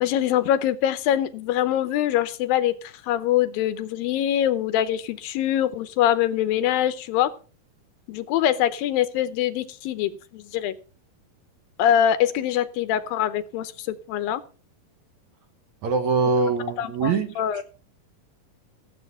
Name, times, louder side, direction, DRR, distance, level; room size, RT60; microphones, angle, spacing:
voice 1, 0.0-7.3 8.1-10.8 11.8-14.4 16.8-17.6, left 11 dB, 80° left, 13 dB, 2.6 m, -24 dB
voice 2, 15.8-17.6, right 4 dB, 65° right, 8 dB, 2.1 m, -23 dB
15.5 x 8.0 x 5.7 m, 0.36 s
omnidirectional pair, 4.2 m